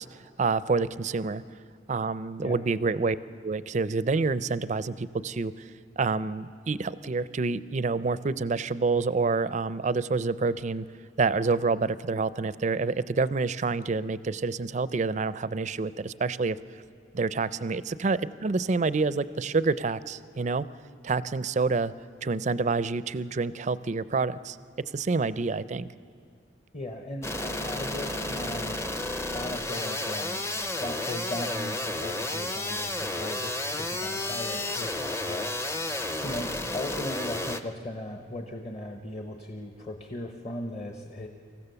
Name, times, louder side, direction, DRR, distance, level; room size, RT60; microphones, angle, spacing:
voice 1, 0.0-1.4 1.9-3.2 3.4-10.9 11.2-16.6 17.1-20.6 21.0-21.9 22.2-24.6 24.9-25.9, right 4 dB, 40° right, 16 dB, 0.4 m, -28 dB
voice 2, 26.7-28.9 29.1-30.5 30.8-35.9 36.2-41.3, left 1 dB, 35° left, 4 dB, 1.0 m, -38 dB
sound 1, 27.2-37.6, left 1 dB, 15° left, 0.6 m, -32 dB
25.0 x 15.0 x 6.9 m, 2.2 s
head